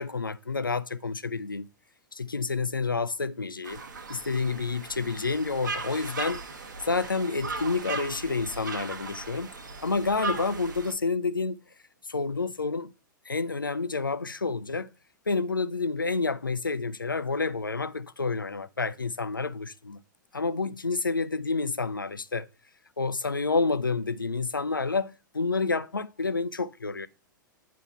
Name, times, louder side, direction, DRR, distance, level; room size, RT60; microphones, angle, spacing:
voice 1, 0.0-1.7 2.1-3.8 4.1-6.4 6.8-9.5 9.8-11.6 12.1-12.9 13.3-14.9 15.3-20.0 20.3-22.5 23.0-27.1, left 4 dB, 85° left, 0.4 m, -29 dB
sound 1, 3.6-10.9, right 4 dB, 65° right, 1.1 m, -37 dB
9.3 x 3.8 x 5.2 m
figure-of-eight pair, 100°, 11 cm